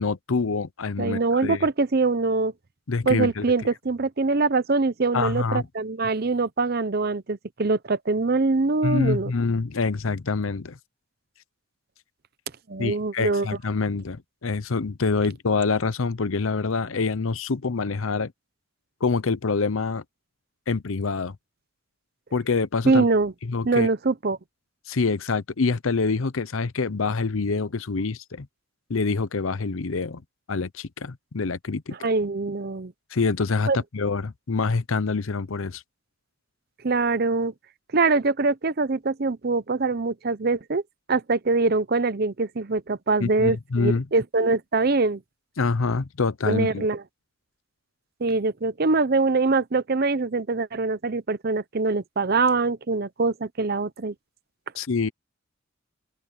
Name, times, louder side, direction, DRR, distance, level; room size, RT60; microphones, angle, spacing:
voice 1, 0.0-1.7 2.9-3.5 5.1-5.7 8.8-10.8 12.8-18.3 19.0-20.0 20.7-21.4 22.3-23.1 23.4-23.9 24.9-28.5 28.9-30.2 30.5-32.1 33.1-35.8 43.2-44.1 45.6-46.9 54.8-55.1, left 4 dB, 75° left, 0.7 m, -26 dB
voice 2, 1.0-2.5 3.1-9.3 12.7-13.5 22.8-23.3 23.6-24.4 32.0-32.9 33.7-33.8 36.8-37.5 37.9-40.8 41.1-45.2 46.4-47.0 48.2-54.1, right 3 dB, 45° right, 0.7 m, -23 dB
open air
head